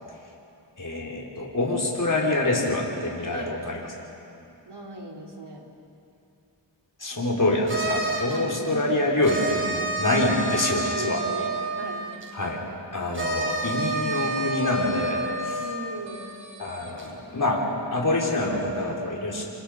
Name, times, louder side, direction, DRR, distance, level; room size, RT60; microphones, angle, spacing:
voice 1, 0.8-3.9 7.0-11.2 12.3-12.6 12.9-15.2 16.6-19.4, left 2 dB, 40° left, -3 dB, 4.8 m, -26 dB
voice 2, 3.3-3.7 4.7-5.7 8.3-10.0 10.7-12.2 14.7-16.3, right 1 dB, 55° right, 0 dB, 3.9 m, -38 dB
sound 1, 7.7-8.4 9.2-12.3 13.1-17.1, right 2 dB, 25° right, 4.5 m, -30 dB
28.5 x 25.0 x 5.3 m, 2.7 s
cardioid pair, 40°, 47 cm